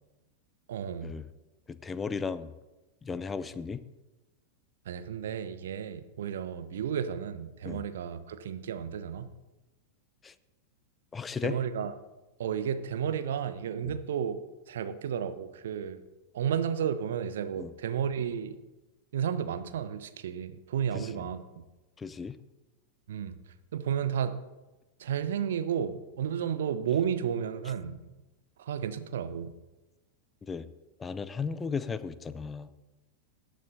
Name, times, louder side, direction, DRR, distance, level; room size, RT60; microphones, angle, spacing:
voice 1, 0.7-1.2 4.8-9.3 11.4-11.9 12.4-16.0 16.3-18.6 19.1-21.6 23.1-23.4 23.7-24.4 25.0-28.0 28.6-29.5, right 8 dB, 60° right, 11 dB, 0.8 m, -32 dB
voice 2, 1.7-2.5 3.0-3.8 7.6-7.8 10.2-10.3 11.1-11.6 13.8-13.9 17.6-17.7 20.9-21.3 22.0-22.4 30.5-30.7 31.0-32.7, left 5 dB, 15° left, 14 dB, 0.6 m, -35 dB
17.5 x 10.0 x 2.7 m, 1.1 s
figure-of-eight pair, 90°, 0 cm